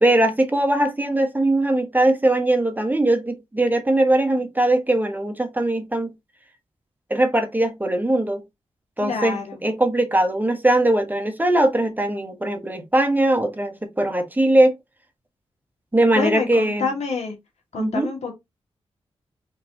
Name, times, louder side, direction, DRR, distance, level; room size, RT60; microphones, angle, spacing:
voice 1, 0.0-6.1 7.1-8.4 9.0-14.7 15.9-16.9 17.8-18.1, right 1 dB, 15° right, 1.4 m, -20 dB
voice 2, 9.0-9.6 16.1-17.4 17.7-18.3, left 5 dB, 75° left, 2.2 m, -27 dB
4.3 x 3.8 x 2.9 m
cardioid pair, 50°, 11 cm